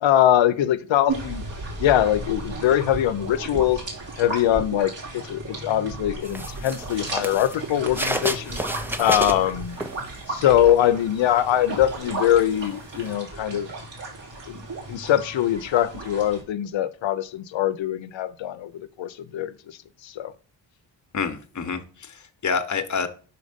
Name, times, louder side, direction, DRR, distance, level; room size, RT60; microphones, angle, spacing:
voice 1, 0.0-1.4 1.8-3.8 4.2-8.6 9.0-9.8 10.3-13.7 14.5-14.6 14.9-19.8 20.0-20.3, left 11 dB, 75° left, 0.7 m, -22 dB
sound 1, 1.1-16.4, right 2 dB, 65° right, 3.1 m, -35 dB
sound 2, 6.2-10.4 10.8-13.1, right 1 dB, 5° right, 0.6 m, -31 dB
voice 2, 21.1-23.1, left 5 dB, 40° left, 1.0 m, -28 dB
5.1 x 4.6 x 5.1 m
cardioid pair, 60°, 46 cm